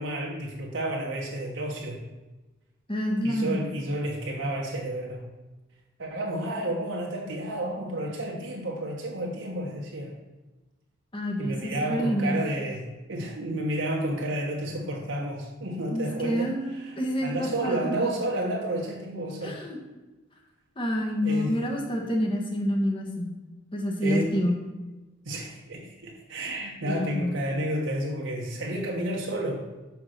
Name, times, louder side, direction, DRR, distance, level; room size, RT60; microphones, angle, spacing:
voice 1, 0.0-2.0 3.2-5.2 6.0-10.1 11.4-17.0 17.2-19.6 21.2-21.6 24.0-24.4 25.2-29.6, right 1 dB, 70° right, -2 dB, 1.3 m, -31 dB
voice 2, 2.9-3.6 11.1-12.4 15.9-17.9 19.4-19.8 20.8-23.3 23.7-24.6 26.8-27.3, equal, 25° left, 0 dB, 1.4 m, -28 dB
5.8 x 5.8 x 6.6 m, 1.1 s
head